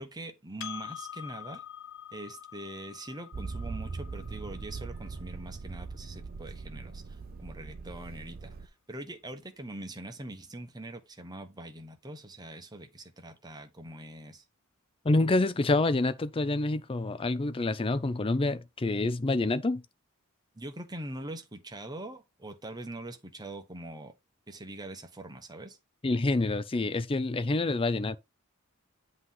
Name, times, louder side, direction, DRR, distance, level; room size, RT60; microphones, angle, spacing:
voice 1, 0.0-1.6 2.1-14.4 20.5-24.1 24.5-25.8, right 1 dB, 20° right, 1.0 m, -43 dB
Percussion, 0.6-5.4, left 10 dB, 60° left, 0.9 m, -45 dB
Motor vehicle (road), 3.3-8.7, right 4 dB, 45° right, 0.5 m, -40 dB
voice 2, 15.0-19.8 26.0-28.2, left 2 dB, 25° left, 0.5 m, -27 dB
8.0 x 3.1 x 5.6 m
head